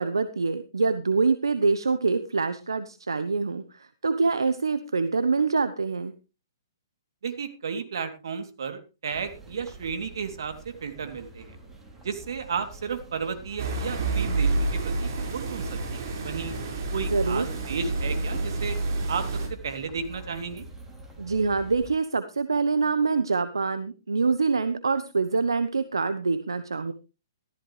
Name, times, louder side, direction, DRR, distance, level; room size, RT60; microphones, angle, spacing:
voice 1, 0.0-6.1 17.1-17.5 21.2-26.9, right 4 dB, 85° right, 12 dB, 1.0 m, -25 dB
voice 2, 7.2-10.5 10.8-11.6 12.0-16.5 16.9-18.8 19.1-19.2 19.6-20.7, right 6 dB, 70° right, 8 dB, 2.9 m, -33 dB
sound 1, 9.1-21.9, right 2 dB, 15° right, 3.6 m, -46 dB
sound 2, 13.6-19.5, right 2 dB, 50° right, 5.0 m, -29 dB
14.5 x 13.5 x 3.2 m, 0.31 s
hypercardioid pair, 130°, 2 cm